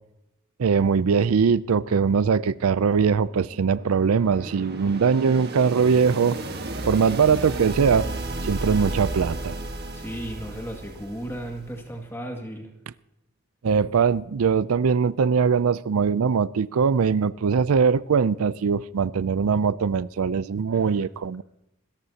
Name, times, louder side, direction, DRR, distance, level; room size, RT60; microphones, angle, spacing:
voice 1, 0.6-6.4 6.9-8.1 8.4-9.6 13.6-21.4, right 6 dB, 85° right, 0.4 m, -21 dB
sound 1, 3.3-11.8, right 2 dB, 50° right, 1.5 m, -33 dB
voice 2, 9.9-12.7 20.7-20.9, right 1 dB, 10° left, 2.1 m, -35 dB
27.5 x 14.5 x 2.9 m
head